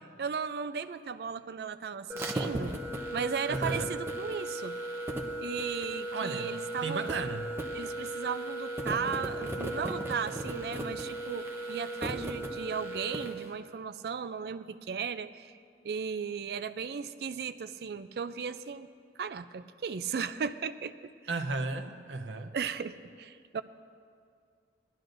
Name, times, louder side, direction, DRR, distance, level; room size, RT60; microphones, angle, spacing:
voice 1, 0.2-2.8 3.1-4.8 5.4-7.1 7.7-15.5 15.8-18.9 19.2-20.9 22.5-23.6, right 6 dB, 60° right, 12 dB, 0.4 m, -36 dB
sound 1, 2.1-13.4, right 1 dB, 15° right, 0.8 m, -36 dB
voice 2, 3.5-3.9 6.1-6.5 6.8-7.5 21.3-22.6, right 3 dB, 90° right, 8 dB, 0.7 m, -34 dB
18.5 x 12.0 x 2.6 m, 2.3 s
head